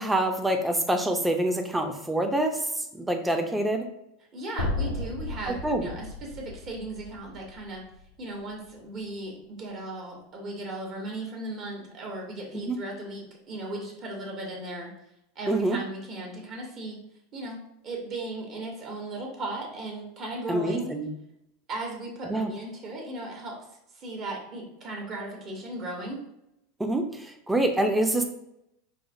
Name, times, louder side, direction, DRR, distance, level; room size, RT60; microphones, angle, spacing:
voice 1, 0.0-2.6 2.9-3.9 5.6-5.9 12.5-12.8 15.5-15.8 20.5-21.1 22.3-22.5 26.8-28.2, right 1 dB, 10° right, 5 dB, 0.5 m, -26 dB
voice 2, 4.3-7.8 8.2-14.9 15.3-17.0 17.3-20.9 21.7-23.7 23.9-26.2, right 2 dB, 45° right, -1 dB, 1.1 m, -37 dB
sound 1, 4.6-8.8, left 2 dB, 90° left, 0.5 m, -35 dB
4.7 x 2.0 x 2.6 m, 0.82 s
hypercardioid pair, 95°, 0 cm